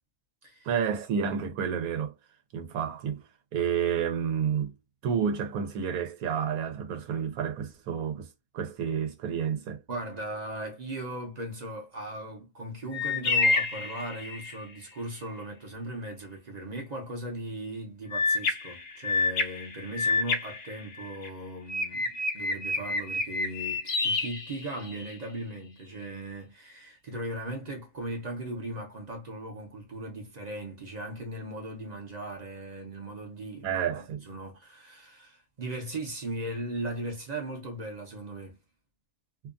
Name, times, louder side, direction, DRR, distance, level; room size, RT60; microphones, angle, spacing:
voice 1, 0.6-2.1 2.5-3.2 3.5-4.7 5.0-8.3 8.5-9.8 33.6-34.2, right 7 dB, 90° right, 1.1 m, -30 dB
voice 2, 9.9-38.6, right 1 dB, 40° right, 0.7 m, -38 dB
sound 1, 12.9-14.6 18.1-21.3 21.7-25.1, left 3 dB, 65° left, 0.5 m, -29 dB
2.7 x 2.2 x 2.4 m
omnidirectional pair, 1.5 m